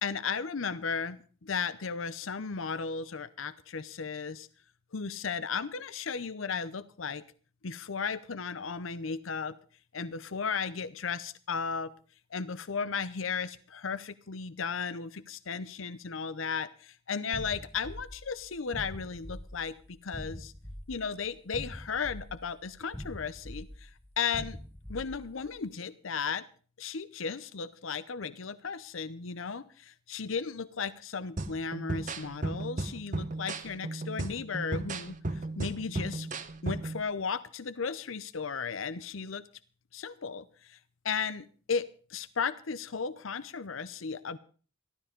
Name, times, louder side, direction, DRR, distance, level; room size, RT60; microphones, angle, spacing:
voice 1, 0.0-4.5 4.9-7.2 7.6-9.6 9.9-11.9 12.3-20.5 20.9-23.9 24.2-24.6 24.9-26.5 26.8-36.3 36.6-39.4 39.9-40.8 41.0-44.4, left 5 dB, 80° left, 14 dB, 0.7 m, -35 dB
sound 1, 17.3-25.6, equal, 10° left, 0.8 m, -44 dB
sound 2, 31.4-37.0, right 2 dB, 40° right, 1.0 m, -35 dB
14.5 x 12.5 x 5.2 m, 0.40 s
head